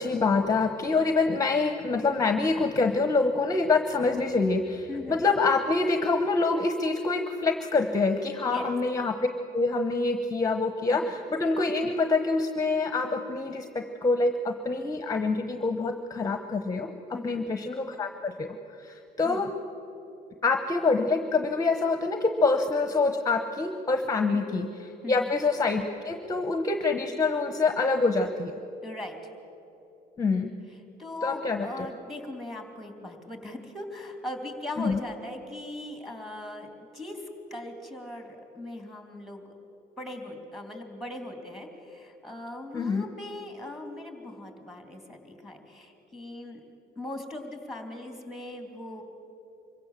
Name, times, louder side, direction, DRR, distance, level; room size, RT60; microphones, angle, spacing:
voice 1, 0.0-9.1 9.5-16.9 17.2-19.5 20.4-28.5 30.2-30.5 31.2-31.9 34.8-35.0 42.7-43.1, left 3 dB, 20° left, 7 dB, 1.0 m, -26 dB
voice 2, 4.9-5.2 8.5-8.8 10.9-11.2 17.1-17.4 19.2-19.5 25.0-25.3 28.8-29.2 31.0-39.5 40.0-46.6 46.9-49.0, left 1 dB, ahead, 4 dB, 2.9 m, -39 dB
25.0 x 16.0 x 7.4 m, 2.9 s
cardioid pair, 110°, 17 cm